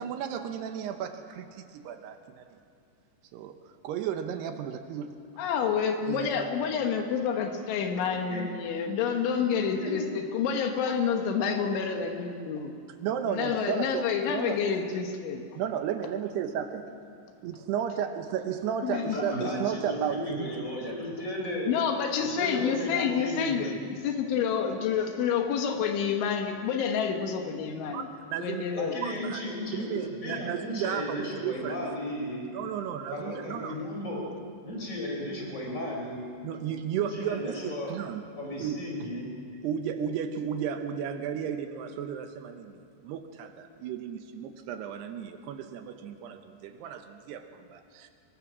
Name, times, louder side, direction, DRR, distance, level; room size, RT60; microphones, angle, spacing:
voice 1, 0.0-2.5 3.3-3.5 3.8-5.1 6.0-6.5 13.0-14.6 15.6-16.8 17.4-20.6 27.9-28.0 28.3-28.7 29.0-29.4 29.7-31.8 32.5-33.8 36.4-38.3 38.6-38.8 39.6-47.4 47.7-48.1, right 8 dB, 75° right, 7 dB, 2.7 m, -33 dB
voice 2, 5.4-12.7 13.3-15.5 18.8-19.2 21.7-28.1 28.4-29.0, left 7 dB, 80° left, 5 dB, 3.7 m, -28 dB
voice 3, 9.6-10.0 18.9-21.7 22.2-23.8 28.7-32.4 33.1-34.3 34.6-36.3 37.0-37.9 38.4-39.3, left 1 dB, 20° left, -1 dB, 3.8 m, -35 dB
23.5 x 22.5 x 6.1 m, 2.4 s
omnidirectional pair, 5.4 m